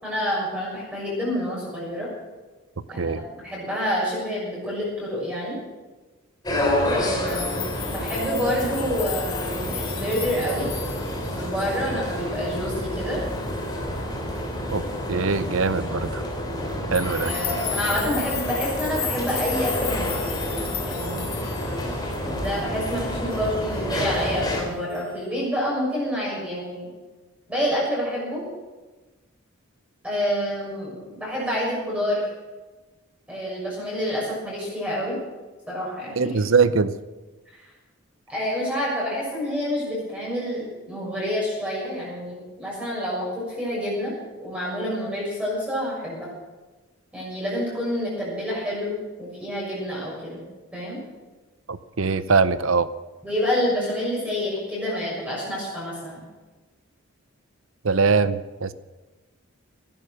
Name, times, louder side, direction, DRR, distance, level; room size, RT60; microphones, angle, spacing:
voice 1, 0.0-2.1 2.9-5.6 6.9-10.7 11.3-13.2 17.2-20.2 20.8-21.4 22.2-26.9 27.5-28.4 30.0-32.2 33.3-35.2 35.7-36.3 38.3-44.1 44.4-46.3 47.1-50.4 50.7-51.0 53.2-56.2, equal, 5° right, -6 dB, 6.6 m, -28 dB
sound 1, 6.4-24.6, left 1 dB, 20° left, 3.0 m, -29 dB
sound 2, 7.3-12.2 12.5-12.9 13.5-13.7 16.9-22.6 23.0-23.5 23.9-24.3 24.9-25.1, left 10 dB, 90° left, 2.2 m, -35 dB
voice 2, 15.1-16.2 16.9-17.3 36.2-36.9 51.7-52.9 57.8-58.7, right 4 dB, 70° right, 14 dB, 0.7 m, -22 dB
18.5 x 11.0 x 6.6 m, 1.2 s
head